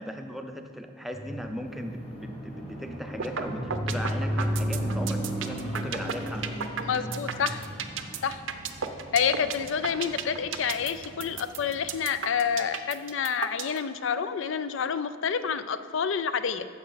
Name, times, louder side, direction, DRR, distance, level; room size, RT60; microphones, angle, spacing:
voice 1, 0.0-6.5, equal, ahead, 4 dB, 0.5 m, -38 dB
sound 1, 1.1-12.1, equal, 30° left, 1.6 m, -35 dB
sound 2, 3.2-3.4 3.7-13.8, right 7 dB, 75° right, 0.6 m, -33 dB
voice 2, 6.8-7.6 8.2-8.4 9.1-16.7, left 7 dB, 70° left, 12 dB, 0.4 m, -28 dB
14.0 x 5.5 x 4.0 m, 2.4 s
head